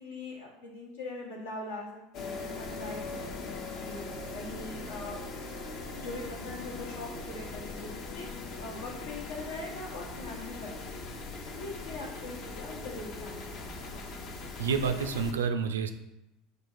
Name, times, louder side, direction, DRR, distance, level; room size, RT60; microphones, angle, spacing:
voice 1, 0.0-4.0 4.3-5.2 6.0-8.3 8.6-11.2 11.5-13.8, left 2 dB, 80° left, -1 dB, 1.0 m, -42 dB
sound 1, 2.1-15.3, left 3 dB, 50° left, 0.6 m, -40 dB
voice 2, 14.6-15.9, right 6 dB, 80° right, 8 dB, 0.3 m, -29 dB
4.4 x 2.4 x 4.7 m, 0.93 s
hypercardioid pair, 75°, 0 cm